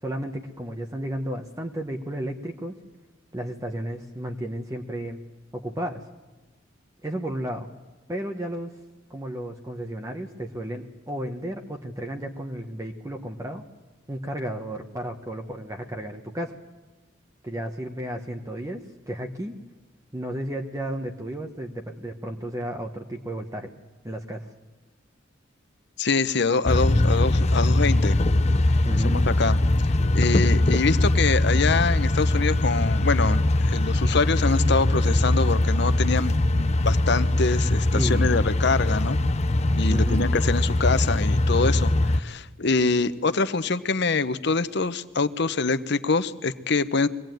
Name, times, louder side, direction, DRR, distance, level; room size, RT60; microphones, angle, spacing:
voice 1, 0.0-2.8 3.3-5.2 5.5-6.0 7.0-7.7 8.1-8.8 9.1-13.6 14.1-16.6 17.4-18.8 19.1-19.5 20.1-23.7 24.0-24.5 28.8-29.2 37.9-38.3 39.9-40.3, right 1 dB, 15° right, 3 dB, 1.1 m, -33 dB
voice 2, 26.0-28.2 29.0-29.6 30.1-39.2 39.8-47.1, left 4 dB, 60° left, 13 dB, 1.0 m, -25 dB
sound 1, 26.7-42.2, left 1 dB, 35° left, 0.8 m, -21 dB
23.5 x 18.0 x 9.3 m, 1.2 s
head